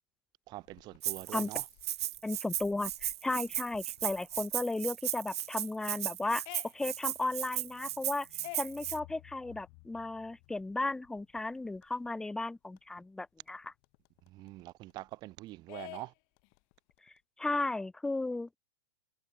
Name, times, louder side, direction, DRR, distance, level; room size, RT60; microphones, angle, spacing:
voice 1, 0.5-1.6 14.3-16.1, right 18 dB, 30° right, 1.6 m, -44 dB
sound 1, 0.6-12.1 12.4-12.5 12.8-15.3 15.7-17.2, left 40 dB or more, 40° left, 6.2 m, -54 dB
Rattle (instrument), 1.0-9.0, right 12 dB, 70° right, 2.0 m, -36 dB
voice 2, 2.2-6.4 6.7-8.3 8.6-13.7 17.4-18.6, left 2 dB, 5° left, 0.7 m, -35 dB
supercardioid pair, 155°, 14 cm